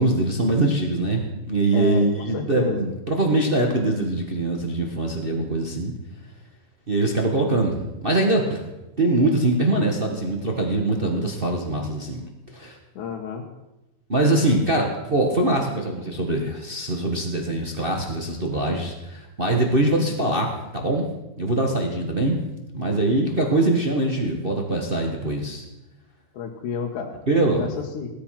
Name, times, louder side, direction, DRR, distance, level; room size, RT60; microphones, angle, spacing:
voice 1, 0.0-5.9 6.9-8.6 9.0-12.2 12.5-12.8 14.1-21.1 21.4-22.5 22.7-25.6 27.3-27.6, right 2 dB, 45° right, 1 dB, 0.6 m, -23 dB
voice 2, 1.7-2.9 13.0-13.5 26.3-27.2 27.5-27.7 27.9-28.1, left 6 dB, 70° left, 2 dB, 2.6 m, -30 dB
17.0 x 13.5 x 5.9 m, 0.99 s
omnidirectional pair, 3.9 m